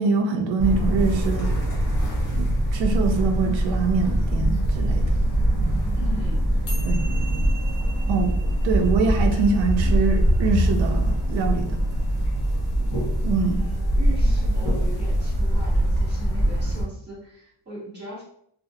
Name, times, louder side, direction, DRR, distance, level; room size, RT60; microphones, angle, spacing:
voice 1, 0.0-1.5 2.3-5.2 6.8-7.0 8.1-8.4 8.6-11.8 13.2-13.5, right 4 dB, 90° right, 4 dB, 0.5 m, -24 dB
sound 1, 0.6-16.8, right 1 dB, 25° left, 0.9 m, -23 dB
voice 2, 5.9-6.5 13.3-18.2, right 1 dB, 25° right, -8 dB, 1.3 m, -39 dB
sound 2, 6.7-13.2, right 2 dB, 50° left, 0.8 m, -45 dB
2.3 x 2.1 x 2.8 m, 0.68 s
wide cardioid pair, 170°, 44 cm